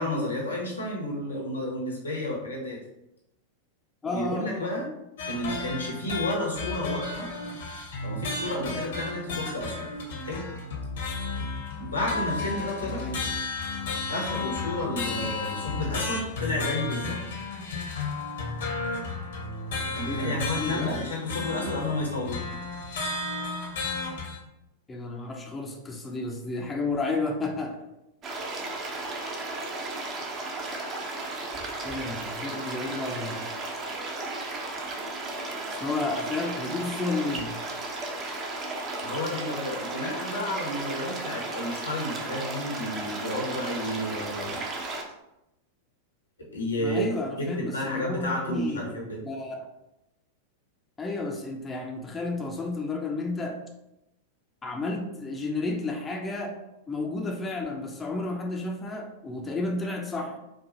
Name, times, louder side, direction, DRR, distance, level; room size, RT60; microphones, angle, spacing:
voice 1, 0.0-2.8 4.1-4.8 5.3-7.3 8.0-9.9 10.2-10.4 11.8-13.0 14.1-17.2 19.9-22.4 39.0-44.6 46.5-47.0 47.4-49.2, left 1 dB, 85° left, -2 dB, 1.1 m, -31 dB
voice 2, 4.0-4.8 12.9-13.2 20.0-21.0 24.9-27.8 31.8-33.5 35.8-37.6 46.8-49.7 51.0-53.6 54.6-56.6 56.9-60.4, left 3 dB, 15° left, 2 dB, 0.5 m, -32 dB
acoustic guitar with fab filter in ableton live, 5.2-24.4, left 3 dB, 65° left, 0.9 m, -33 dB
sound 1, 28.2-45.0, right 2 dB, 30° right, 0.7 m, -34 dB
4.7 x 2.4 x 2.6 m, 0.89 s
figure-of-eight pair, 90°, 0 cm